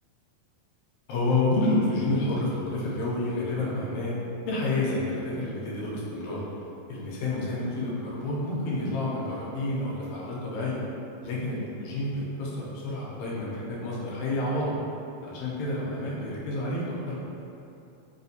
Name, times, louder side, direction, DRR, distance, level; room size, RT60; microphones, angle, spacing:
voice 1, 1.1-4.2 4.5-6.4 6.9-10.8 11.2-14.8 15.2-17.2, left 2 dB, 75° left, -6 dB, 1.9 m, -29 dB
4.9 x 2.2 x 2.7 m, 2.8 s
omnidirectional pair, 3.4 m